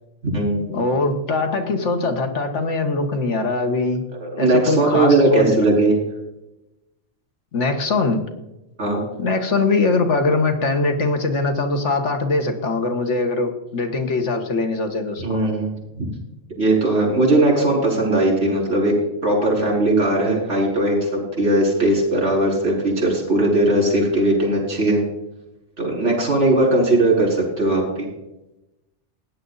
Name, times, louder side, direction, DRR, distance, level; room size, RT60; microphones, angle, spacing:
voice 1, 0.2-0.8 4.2-6.0 8.8-9.0 15.2-15.7 16.0-16.1 16.6-18.9 19.2-25.0 25.8-28.1, right 2 dB, 70° right, -3 dB, 4.9 m, -19 dB
voice 2, 0.7-4.0 4.4-5.7 7.5-8.2 9.2-15.4, left 3 dB, 80° left, 5 dB, 1.8 m, -22 dB
16.5 x 10.0 x 4.0 m, 0.95 s
omnidirectional pair, 1.2 m